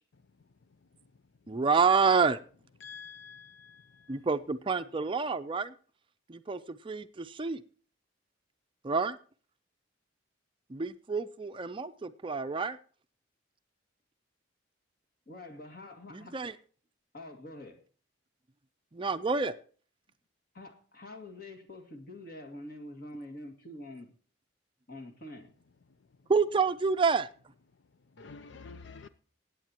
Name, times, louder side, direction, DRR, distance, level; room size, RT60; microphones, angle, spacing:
voice 1, 1.5-2.4 4.1-5.7 6.3-7.6 8.8-9.2 10.7-12.8 16.1-16.5 18.9-19.6 26.3-27.3, right 5 dB, 25° right, 0.4 m, -28 dB
voice 2, 2.8-4.2 28.2-29.1, left 5 dB, 70° left, 0.5 m, -48 dB
voice 3, 15.3-16.3 17.1-17.8 20.5-24.1 24.9-25.5, left 1 dB, 50° left, 2.2 m, -46 dB
20.5 x 9.0 x 2.9 m
head